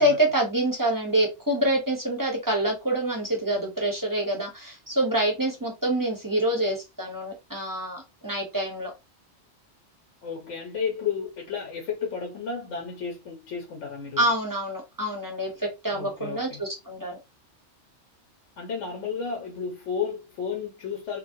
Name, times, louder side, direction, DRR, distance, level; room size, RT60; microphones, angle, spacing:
voice 1, 0.0-8.9 14.2-17.2, right 1 dB, 20° right, 0.7 m, -26 dB
voice 2, 10.2-14.3 15.9-16.6 18.6-21.2, left 6 dB, 90° left, 1.1 m, -32 dB
2.9 x 2.6 x 2.6 m
omnidirectional pair, 1.2 m